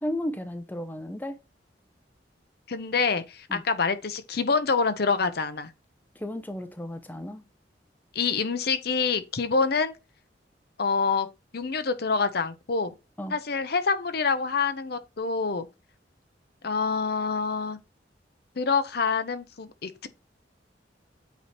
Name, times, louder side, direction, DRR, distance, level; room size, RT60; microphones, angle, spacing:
voice 1, 0.0-1.4 3.5-3.6 6.2-7.4 13.2-13.3, left 1 dB, 10° left, 0.6 m, -33 dB
voice 2, 2.7-5.7 8.1-9.9 10.8-11.3 11.5-12.9 13.3-15.7 16.6-17.8 18.6-20.1, left 4 dB, 60° left, 0.8 m, -26 dB
8.3 x 3.1 x 4.2 m
head